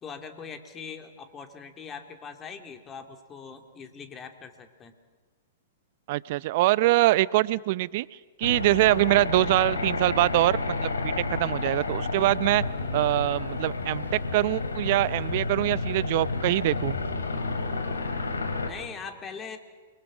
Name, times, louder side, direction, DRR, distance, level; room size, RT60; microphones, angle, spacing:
voice 1, 0.0-4.9 18.6-19.6, left 6 dB, 25° left, 6 dB, 2.7 m, -41 dB
voice 2, 6.1-8.1 8.4-12.6 12.9-17.0, right 17 dB, 50° right, 20 dB, 0.7 m, -24 dB
sound 1, 8.4-18.7, left 3 dB, 90° left, 2.9 m, -30 dB
29.0 x 23.5 x 6.2 m, 1.4 s
hypercardioid pair, 115°, 0 cm